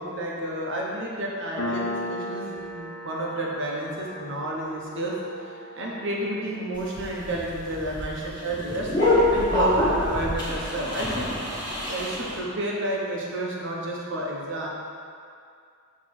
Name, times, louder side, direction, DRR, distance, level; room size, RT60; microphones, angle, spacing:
voice 1, 0.0-5.1 5.7-8.9 9.3-11.3 11.9-14.7, right 1 dB, 55° right, -3 dB, 1.1 m, -30 dB
Piano, 1.6-8.7, left 1 dB, 70° left, 1.0 m, -37 dB
sound 1, 6.7-12.4, left 1 dB, 20° left, 1.3 m, -25 dB
6.5 x 3.4 x 6.0 m, 2.3 s
head